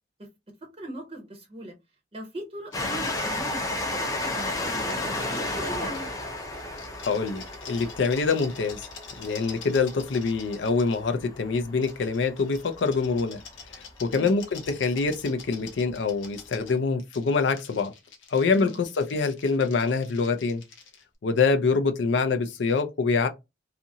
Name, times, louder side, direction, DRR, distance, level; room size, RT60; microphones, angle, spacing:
voice 1, 0.8-1.7 2.1-3.6 3.9-5.0 5.2-6.1 14.1-14.3 18.5-18.8, right 1 dB, 30° right, 0.7 m, -39 dB
sound 1, 2.7-6.2 6.6-11.0 11.8-21.0, left 6 dB, 85° left, 0.8 m, -47 dB
Train, 2.7-13.9 14.6-14.7 14.9-15.0, left 2 dB, 20° left, 0.5 m, -33 dB
voice 2, 7.1-8.8 9.2-13.4 13.7-17.9 18.3-20.6 21.2-23.3, left 4 dB, 70° left, 0.4 m, -25 dB
2.7 x 2.5 x 2.7 m
head